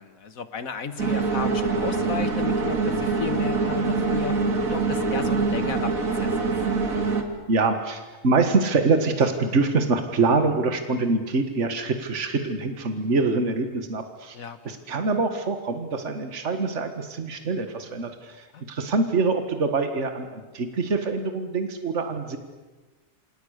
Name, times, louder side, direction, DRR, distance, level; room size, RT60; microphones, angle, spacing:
voice 1, 0.0-6.5 14.3-14.8 18.5-18.6, left 5 dB, 85° left, 11 dB, 2.0 m, -34 dB
sound 1, 1.0-7.2, right 4 dB, 90° right, 2.7 m, -24 dB
voice 2, 7.5-14.4 14.7-22.4, right 3 dB, 60° right, 7 dB, 2.0 m, -25 dB
28.0 x 26.5 x 6.6 m, 1.2 s
omnidirectional pair, 1.4 m